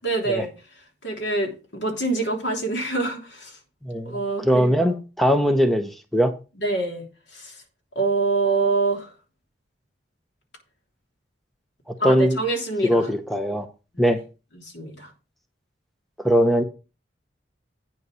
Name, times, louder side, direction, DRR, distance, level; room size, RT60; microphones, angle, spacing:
voice 1, 0.0-0.5 1.0-3.6 4.0-4.7 6.6-7.0 7.3-7.5 7.9-9.1 12.0-13.1 13.9-14.0 14.6-15.1, right 3 dB, 65° left, 3.2 m, -25 dB
voice 2, 3.8-6.3 12.0-12.4 12.8-13.7 14.0-14.2 16.2-16.6, equal, ahead, 0.7 m, -20 dB
9.3 x 5.5 x 6.2 m
head